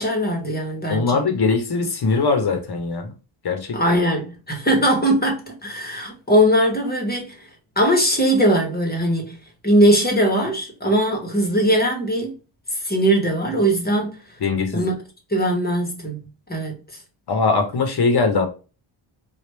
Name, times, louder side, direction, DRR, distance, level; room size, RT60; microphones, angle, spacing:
voice 1, 0.0-1.2 3.7-7.4 7.8-9.4 9.6-12.4 12.8-14.1 14.7-14.9 15.3-16.2 16.5-16.8, right 1 dB, 20° left, 1.0 m, -20 dB
voice 2, 0.9-3.1 3.4-3.8 14.4-14.9 17.3-18.5, left 4 dB, 50° left, 1.0 m, -21 dB
3.3 x 2.4 x 3.1 m
wide cardioid pair, 115°, 50 cm